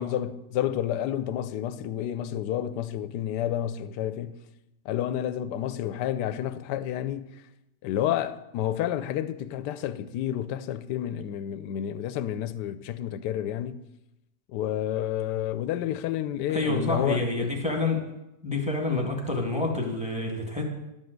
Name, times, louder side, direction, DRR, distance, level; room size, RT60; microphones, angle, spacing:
voice 1, 0.0-4.4 4.8-7.4 7.8-13.8 14.5-17.5, left 11 dB, 75° left, 1.2 m, -30 dB
voice 2, 16.5-18.1 18.4-20.6, left 2 dB, 5° right, 1.7 m, -28 dB
11.5 x 5.6 x 7.9 m
omnidirectional pair, 1.9 m